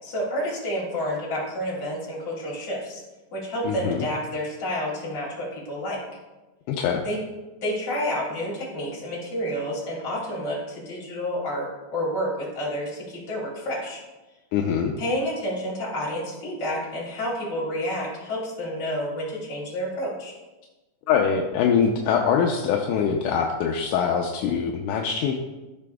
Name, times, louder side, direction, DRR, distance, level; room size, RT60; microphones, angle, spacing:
voice 1, 0.0-3.0 3.3-6.0 7.0-7.2 7.6-11.7 11.9-14.0 15.0-20.3, equal, 45° left, -5 dB, 3.6 m, -29 dB
voice 2, 3.6-4.1 6.7-7.0 14.5-14.9 21.1-25.4, left 7 dB, 80° left, 1 dB, 2.2 m, -23 dB
14.5 x 6.1 x 2.3 m, 1.1 s
omnidirectional pair, 3.7 m